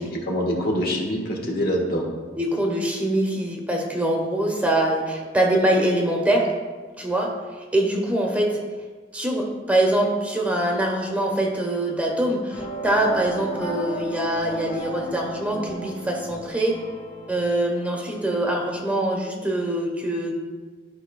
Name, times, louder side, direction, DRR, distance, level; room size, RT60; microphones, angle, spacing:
voice 1, 0.0-2.0, equal, 60° left, 0 dB, 1.4 m, -25 dB
voice 2, 2.4-6.5 7.0-7.3 7.7-8.6 9.1-16.8 17.3-20.4, right 1 dB, 10° right, 0 dB, 1.0 m, -23 dB
sound 1, 12.5-18.8, right 2 dB, 35° left, 2.0 m, -35 dB
13.0 x 5.0 x 2.3 m, 1.4 s
head